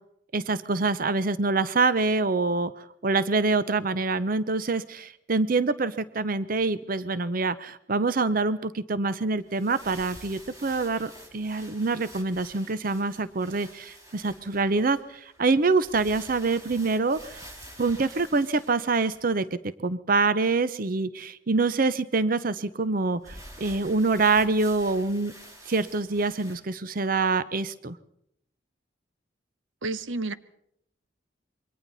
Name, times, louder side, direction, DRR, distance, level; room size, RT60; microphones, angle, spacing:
voice 1, 0.3-2.7 3.0-17.4 17.8-25.3 25.7-28.0, right 3 dB, 45° right, 0.7 m, -25 dB
sound 1, 9.4-19.5 23.2-26.6, equal, 20° right, 4.5 m, -48 dB
voice 2, 29.8-30.3, right 2 dB, 90° right, 1.0 m, -30 dB
27.5 x 23.5 x 4.1 m
head